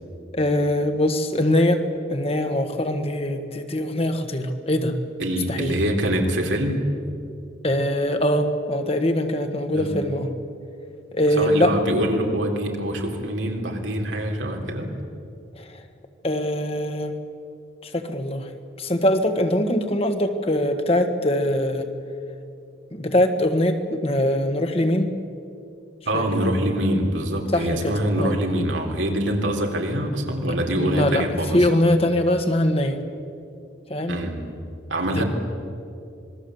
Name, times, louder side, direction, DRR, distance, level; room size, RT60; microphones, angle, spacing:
voice 1, 0.3-1.8 2.1-5.0 5.5-5.8 7.6-10.3 11.1-11.7 15.6-15.8 16.2-17.1 17.8-18.5 18.8-21.9 22.9-25.1 26.1-26.3 27.5-28.3 30.8-31.2 31.5-33.0 33.9-34.2 35.1-35.2, left 1 dB, 30° left, 7 dB, 1.6 m, -22 dB
voice 2, 5.2-6.8 9.8-9.9 11.4-14.9 26.1-31.7 34.1-34.4 34.9-35.2, right 1 dB, 85° right, 1 dB, 3.7 m, -24 dB
26.5 x 21.0 x 8.1 m, 2.6 s
head